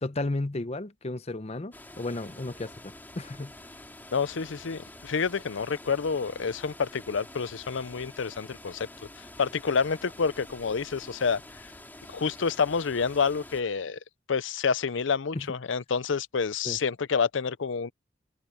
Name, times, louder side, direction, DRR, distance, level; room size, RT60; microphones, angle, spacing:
voice 1, 0.0-3.5 15.3-15.5 16.6-16.8, left 2 dB, 35° left, 0.8 m, -33 dB
sound 1, 1.7-13.6, left 1 dB, 10° left, 2.9 m, -48 dB
voice 2, 4.1-8.9 9.4-11.4 12.1-14.0 14.3-17.9, left 5 dB, 85° left, 0.6 m, -28 dB
open air
head